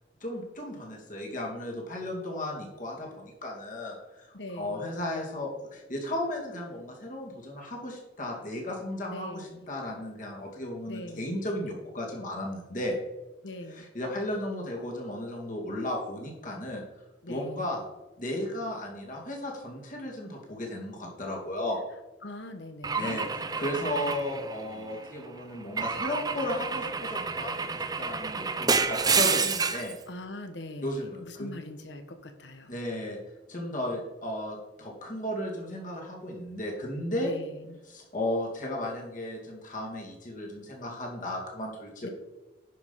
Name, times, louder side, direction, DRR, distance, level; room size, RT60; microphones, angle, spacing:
voice 1, 0.2-13.0 13.7-16.8 17.3-17.8 18.2-21.8 23.0-23.2 23.6-30.0 30.8-31.6 32.7-33.2 33.5-37.3 37.9-42.1, left 1 dB, 45° left, -1 dB, 2.3 m, -35 dB
voice 2, 4.3-4.8 9.1-9.7 10.9-11.4 13.4-13.8 17.2-17.7 22.2-23.3 30.1-32.8 37.2-37.8 42.0-42.1, left 1 dB, 80° left, 8 dB, 1.1 m, -41 dB
Car / Engine / Glass, 22.8-25.1 25.8-29.9, right 5 dB, 20° right, 0.6 m, -29 dB
10.0 x 5.3 x 5.5 m, 1.1 s
head